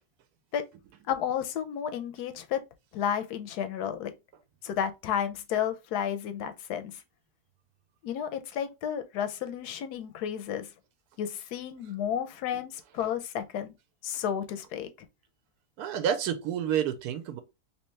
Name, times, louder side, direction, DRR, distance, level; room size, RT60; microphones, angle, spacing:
voice 1, 1.1-2.6 2.9-4.1 4.6-7.0 8.0-10.7 11.2-13.7 14.0-14.9, left 9 dB, 90° left, 1.2 m, -32 dB
voice 2, 15.8-17.4, right 9 dB, 90° right, 1.1 m, -29 dB
3.3 x 2.9 x 3.1 m
omnidirectional pair, 1.6 m